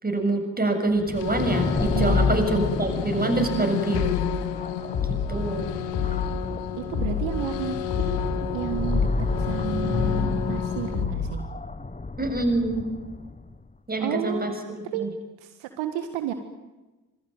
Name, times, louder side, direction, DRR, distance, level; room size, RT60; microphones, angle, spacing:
voice 1, 0.0-4.2 5.3-5.7 12.2-12.8 13.9-14.5 15.0-15.1, right 2 dB, 20° right, 5 dB, 7.3 m, -25 dB
sound 1, 1.0-13.6, left 3 dB, 15° left, 1.4 m, -30 dB
sound 2, 1.1-11.0, left 10 dB, 70° left, 1.7 m, -32 dB
voice 2, 1.9-2.4 3.4-3.7 6.8-11.5 14.0-15.1 15.4-16.3, right 10 dB, 65° right, 8 dB, 1.8 m, -32 dB
sound 3, 3.9-4.3 4.9-5.3 5.9-6.3 6.9-7.3 7.9-8.3 8.9-9.3 9.9-10.3 10.9-11.3, left 8 dB, 55° left, 5.5 m, -28 dB
26.5 x 20.0 x 9.3 m, 1.1 s
figure-of-eight pair, 40°, 49 cm